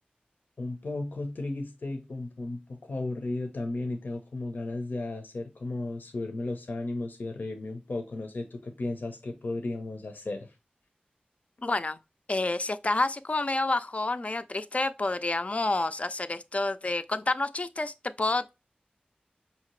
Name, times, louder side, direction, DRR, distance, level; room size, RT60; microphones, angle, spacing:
voice 1, 0.6-10.5, left 2 dB, 80° left, 0.7 m, -34 dB
voice 2, 11.6-12.0 12.3-18.6, left 2 dB, 45° left, 0.4 m, -29 dB
5.0 x 2.8 x 3.0 m
wide cardioid pair, 55°, 3 cm